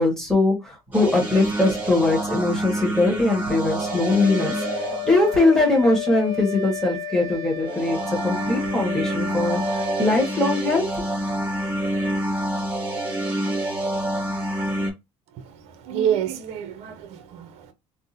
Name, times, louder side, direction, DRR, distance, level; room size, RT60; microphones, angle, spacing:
voice 1, 0.0-4.5 5.0-11.0, left 2 dB, 5° left, 1.3 m, -21 dB
sound 1, 0.9-6.1 7.6-14.9, right 1 dB, 15° right, 1.1 m, -27 dB
Wind instrument woodwind instrument, 3.8-10.4, left 7 dB, 40° right, 0.9 m, -33 dB
voice 2, 15.3-17.7, right 9 dB, 65° right, 0.7 m, -28 dB
3.6 x 2.1 x 2.7 m
cardioid pair, 140°, 12 cm